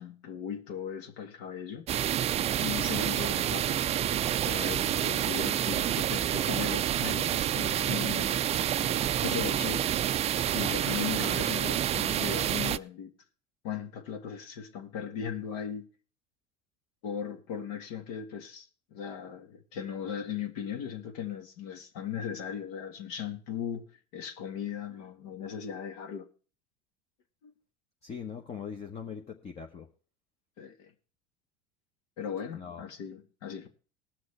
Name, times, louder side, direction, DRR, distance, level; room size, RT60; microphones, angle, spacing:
voice 1, 0.0-1.9 2.6-3.9 4.4-8.5 8.8-9.9 10.5-13.1 13.6-15.9 17.0-26.3 27.4-27.5 30.6-30.9 32.2-33.7, left 8 dB, 65° left, 1.9 m, -38 dB
sound 1, 1.9-12.8, right 11 dB, 30° right, 0.4 m, -28 dB
voice 2, 28.0-29.9 32.5-32.8, left 7 dB, 30° left, 1.3 m, -41 dB
18.5 x 6.3 x 4.3 m
hypercardioid pair, 85°, 21 cm